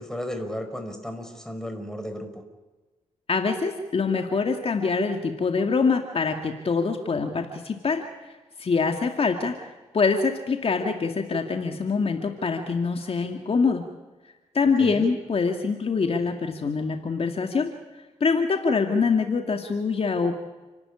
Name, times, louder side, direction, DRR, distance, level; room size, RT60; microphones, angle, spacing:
voice 1, 0.0-2.4 14.8-15.1, equal, 5° left, 7 dB, 5.1 m, -34 dB
voice 2, 3.3-8.0 8.6-9.7 9.9-13.9 14.5-17.7 18.2-20.4, left 4 dB, 50° left, 4 dB, 2.3 m, -24 dB
29.5 x 12.5 x 10.0 m, 1.2 s
cardioid pair, 60°, 13 cm